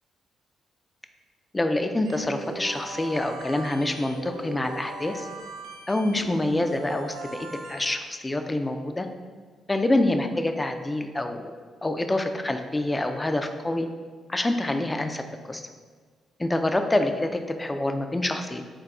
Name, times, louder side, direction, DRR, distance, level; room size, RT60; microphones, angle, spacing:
voice 1, 1.5-5.3 5.9-9.1 9.7-11.5 11.8-13.9 14.3-15.6 16.4-18.6, left 1 dB, 20° left, 7 dB, 0.3 m, -26 dB
sound 1, 2.0-7.9, right 3 dB, 85° right, 0.4 m, -39 dB
3.9 x 2.3 x 3.7 m, 1.5 s
hypercardioid pair, 45°, 0 cm